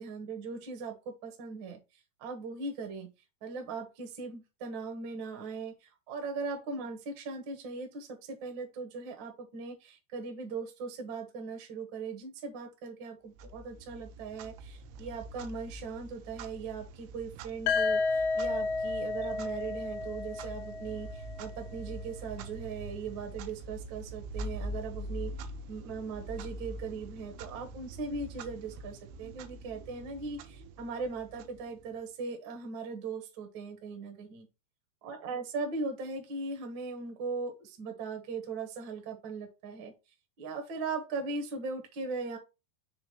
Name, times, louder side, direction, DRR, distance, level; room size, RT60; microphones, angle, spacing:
voice 1, 0.0-1.8 2.2-3.1 3.4-25.3 25.7-34.5 35.0-39.9 40.4-42.4, right 4 dB, 75° right, 3 dB, 1.0 m, -39 dB
Clock, 13.4-32.1, right 1 dB, 90° right, 2.7 m, -44 dB
sound 1, 17.7-21.5, left 4 dB, 85° left, 2.4 m, -32 dB
6.1 x 3.1 x 4.9 m, 0.27 s
omnidirectional pair, 4.4 m